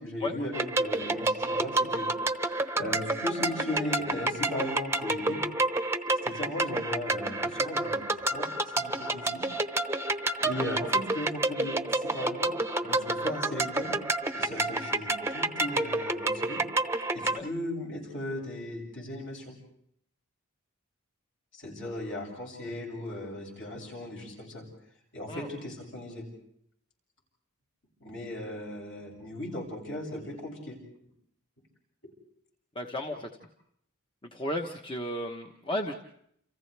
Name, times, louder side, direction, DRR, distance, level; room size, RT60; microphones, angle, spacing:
voice 1, 0.0-2.1 2.7-5.4 6.2-9.4 10.4-12.5 12.8-14.0 14.3-16.6 17.1-19.5 21.5-24.6 25.1-26.3 28.0-30.8, left 1 dB, 60° left, -2 dB, 7.8 m, -37 dB
sound 1, 0.5-17.4, right 2 dB, 10° right, 0.9 m, -29 dB
voice 2, 32.7-33.3 34.2-35.9, left 1 dB, 25° left, 2 dB, 1.1 m, -34 dB
30.0 x 29.0 x 3.4 m, 0.69 s
head